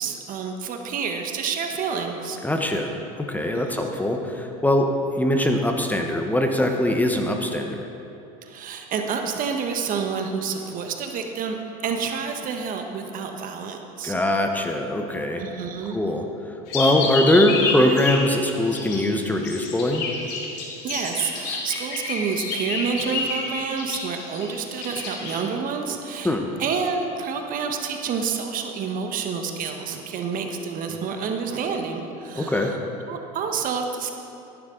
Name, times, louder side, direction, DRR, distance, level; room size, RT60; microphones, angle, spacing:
voice 1, 0.0-2.4 3.5-3.9 8.4-11.6 11.8-14.1 15.4-16.0 20.8-32.8 33.1-34.1, right 6 dB, 45° right, 4 dB, 1.2 m, -29 dB
voice 2, 2.4-2.9 3.2-4.9 5.1-7.9 14.0-15.4 15.9-16.2 16.7-20.0 26.2-26.5 32.3-32.7, left 1 dB, 10° left, 3 dB, 1.0 m, -22 dB
sound 1, 16.7-19.0 19.4-25.4, left 4 dB, 60° left, 2.5 m, -29 dB
13.5 x 11.0 x 3.9 m, 2.8 s
hypercardioid pair, 95°, 19 cm